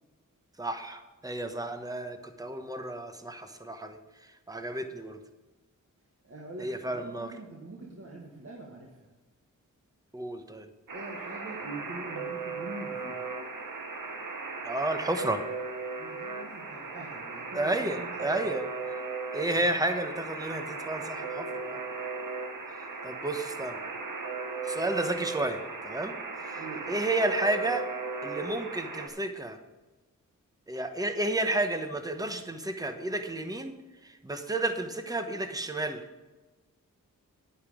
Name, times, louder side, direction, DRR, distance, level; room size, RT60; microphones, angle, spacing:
voice 1, 0.6-4.0 4.5-5.2 6.6-7.3 10.1-10.7 14.6-15.4 17.5-18.6 19.3-21.8 23.0-23.8 24.7-25.6 25.8-26.1 26.9-27.8 28.2-29.6 30.7-33.7 34.2-36.0, right 2 dB, 10° right, 7 dB, 1.0 m, -31 dB
voice 2, 6.2-9.1 10.9-13.2 15.9-18.5 26.5-26.8, right 2 dB, 45° right, -1 dB, 1.8 m, -44 dB
Alarm, 10.9-29.1, right 4 dB, 75° right, 1.4 m, -37 dB
10.5 x 9.5 x 5.1 m, 1.2 s
wide cardioid pair, 85°, 33 cm